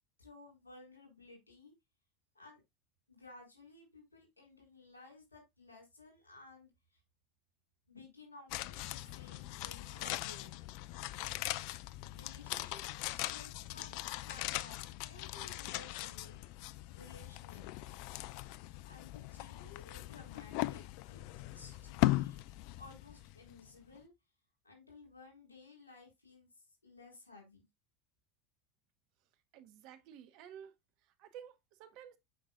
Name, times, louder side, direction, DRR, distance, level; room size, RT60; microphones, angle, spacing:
voice 1, 0.2-1.7 2.3-2.6 3.1-6.7 7.9-10.6 12.1-16.4 16.9-17.7 18.9-22.4 22.8-24.1 24.6-26.5 26.8-27.7, left 3 dB, 85° left, 4.1 m, -56 dB
sound 1, 8.5-23.7 24.0-24.1, left 17 dB, 55° left, 0.4 m, -39 dB
voice 2, 29.5-30.7 31.0-32.2, right 9 dB, 55° right, 1.1 m, -53 dB
7.8 x 5.3 x 2.4 m
figure-of-eight pair, 75°, 0 cm